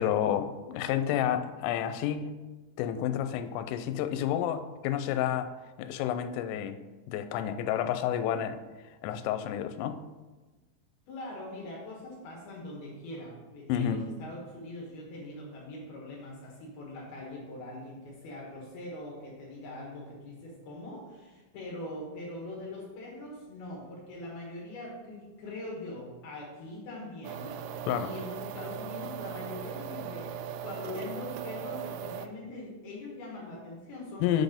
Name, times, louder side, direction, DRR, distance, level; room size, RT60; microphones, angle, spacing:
voice 1, 0.0-2.3 2.8-5.5 5.8-6.8 7.1-8.6 9.0-10.0 13.7-14.0 27.9-28.1 34.2-34.4, left 10 dB, 85° left, 8 dB, 3.2 m, -30 dB
voice 2, 11.1-34.4, left 2 dB, 65° left, -3 dB, 2.7 m, -42 dB
sound 1, 27.2-32.3, right 8 dB, 85° right, 2.8 m, -38 dB
8.3 x 4.1 x 5.1 m, 1.2 s
omnidirectional pair, 5.7 m